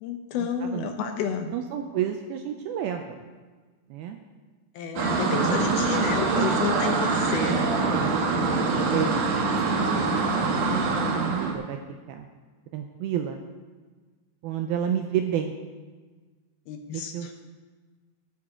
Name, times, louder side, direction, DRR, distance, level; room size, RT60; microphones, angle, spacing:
voice 1, 0.0-1.5 4.8-7.9 16.7-17.3, left 6 dB, 75° left, 5 dB, 2.5 m, -31 dB
voice 2, 1.5-3.2 3.9-4.2 5.3-5.8 6.3-6.8 7.4-7.6 8.0-8.2 8.9-9.2 9.5-11.8 12.1-12.3 12.7-13.4 14.4-15.5 16.9-17.3, right 9 dB, 85° right, 5 dB, 2.2 m, -30 dB
sound 1, 5.0-11.5, right 3 dB, 60° right, 2.4 m, -24 dB
13.5 x 12.5 x 3.7 m, 1.4 s
omnidirectional pair, 4.9 m